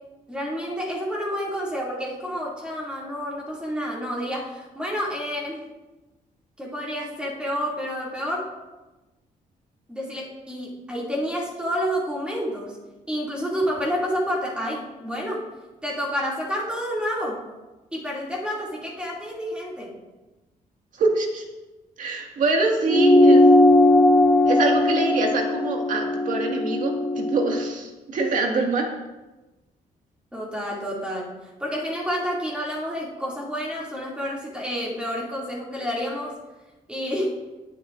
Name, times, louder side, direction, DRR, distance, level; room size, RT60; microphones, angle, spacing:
voice 1, 0.3-5.6 6.6-8.4 9.9-12.7 13.1-15.4 15.8-17.4 17.9-19.9 30.3-31.3 31.6-36.3 36.9-37.3, equal, 5° right, -4 dB, 2.5 m, -29 dB
voice 2, 21.0-21.4 22.0-23.4 24.4-28.9, right 3 dB, 60° right, 1 dB, 2.0 m, -25 dB
sound 1, 22.9-27.7, left 1 dB, 15° left, 1.2 m, -18 dB
19.5 x 8.4 x 2.6 m, 1.1 s
cardioid pair, 140°, 15 cm